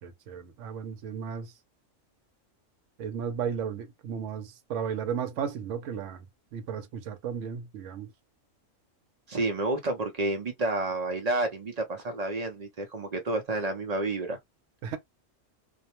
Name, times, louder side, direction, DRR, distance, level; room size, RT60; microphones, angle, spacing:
voice 1, 0.0-1.5 3.0-6.2 6.5-8.1 14.8-15.0, right 7 dB, 70° right, 0.9 m, -34 dB
voice 2, 9.3-14.4, right 2 dB, 55° right, 0.4 m, -30 dB
2.5 x 2.0 x 2.8 m
omnidirectional pair, 1.4 m